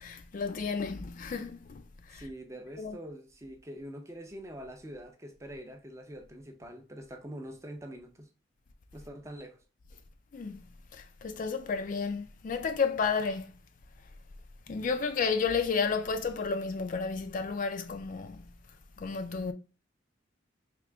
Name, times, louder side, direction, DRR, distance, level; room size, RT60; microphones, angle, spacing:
voice 1, 0.0-1.8 2.1-2.3 2.8-3.0 10.3-10.6 10.9-13.5 14.7-18.5 19.0-19.5, left 5 dB, 45° left, 0.4 m, -32 dB
voice 2, 2.1-8.3 8.9-9.6, equal, 15° right, 0.5 m, -44 dB
3.7 x 2.8 x 3.3 m
head